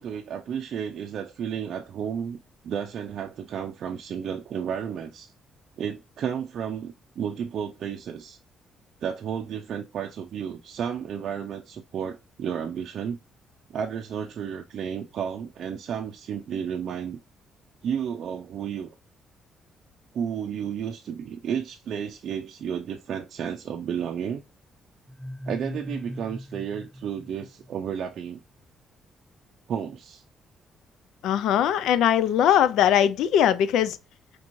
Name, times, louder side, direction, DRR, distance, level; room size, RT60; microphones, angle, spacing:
voice 1, 0.0-5.3 5.8-8.4 9.0-13.2 13.7-17.2 17.8-18.9 20.1-24.4 25.5-28.4 29.7-30.2, right 8 dB, 65° right, 0.4 m, -32 dB
sound 1, 25.1-27.9, left 1 dB, ahead, 0.5 m, -39 dB
voice 2, 31.2-34.0, left 10 dB, 85° left, 0.3 m, -20 dB
4.4 x 3.0 x 2.5 m
cardioid pair, 90°, 0 cm